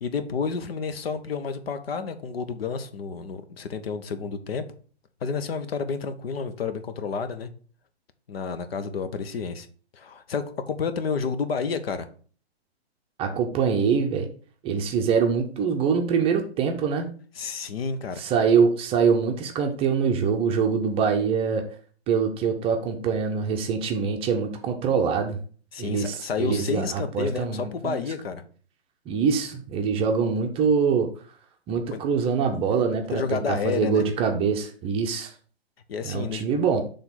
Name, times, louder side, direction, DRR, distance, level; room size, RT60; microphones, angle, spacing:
voice 1, 0.0-4.6 5.2-7.5 8.3-9.7 9.9-12.1 17.4-18.2 25.7-28.4 31.9-32.0 33.1-34.0 35.9-36.5, left 5 dB, 65° left, 10 dB, 0.9 m, -30 dB
voice 2, 13.2-14.3 14.6-17.1 18.2-21.6 22.1-25.4 25.8-28.0 29.1-31.1 31.7-35.3 36.0-36.8, right 6 dB, 20° right, 4 dB, 0.6 m, -24 dB
5.9 x 3.5 x 5.6 m, 0.43 s
hypercardioid pair, 125°, 32 cm